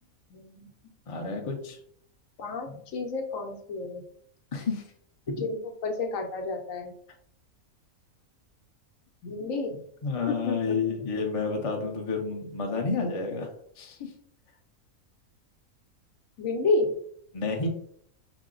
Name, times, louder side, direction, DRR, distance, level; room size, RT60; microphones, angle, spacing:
voice 1, 0.3-0.7 2.4-4.0 5.3-5.6 5.8-6.9 9.2-9.8 10.3-11.0 16.4-16.9, left 3 dB, 70° left, 3 dB, 1.1 m, -30 dB
voice 2, 1.1-1.8 4.5-4.8 5.3-5.4 10.0-13.5 13.8-14.1 17.3-17.7, left 4 dB, 40° left, 2 dB, 0.5 m, -30 dB
5.8 x 2.0 x 3.7 m, 0.65 s
omnidirectional pair, 1.5 m